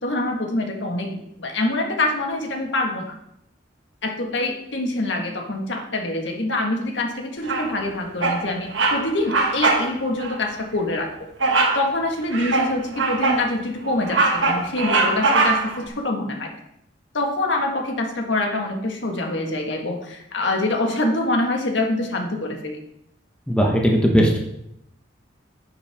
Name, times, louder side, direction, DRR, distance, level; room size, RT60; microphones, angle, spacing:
voice 1, 0.0-3.1 4.0-11.3 11.7-16.5 17.1-22.8, left 2 dB, 75° left, 2 dB, 1.6 m, -25 dB
Bird vocalization bird call bird song, 7.5-7.9 8.2-8.4 8.7-9.0 9.3-9.9 10.2-10.4 11.4-11.8 12.3-13.4 13.9-15.8, right 3 dB, 80° right, 1.6 m, -21 dB
voice 2, 23.5-24.4, equal, 5° left, 0 dB, 1.2 m, -18 dB
10.5 x 7.9 x 3.6 m, 0.79 s
head